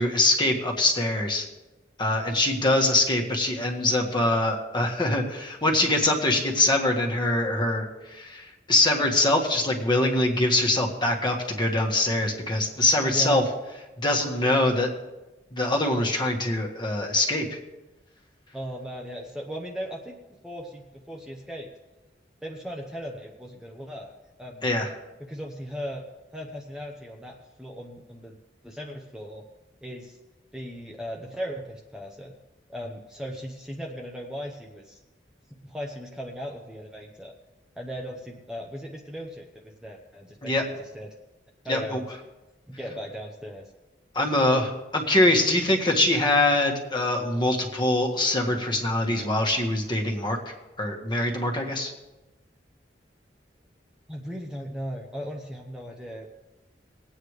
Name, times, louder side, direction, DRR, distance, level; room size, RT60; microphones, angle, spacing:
voice 1, 0.0-1.5 2.0-13.4 14.0-14.9 15.5-17.6 24.6-24.9 40.4-40.6 41.6-42.0 44.1-51.9, left 2 dB, 25° left, 1 dB, 1.7 m, -23 dB
voice 2, 13.0-13.4 18.5-20.2 20.4-21.7 22.4-24.1 24.4-24.7 25.2-26.0 26.3-28.3 28.6-29.4 29.8-30.2 30.5-32.3 32.7-35.0 35.5-37.3 37.8-41.1 41.6-42.1 42.7-43.7 54.1-56.3, equal, 5° right, -1 dB, 0.9 m, -37 dB
21.0 x 8.8 x 3.3 m, 1.1 s
head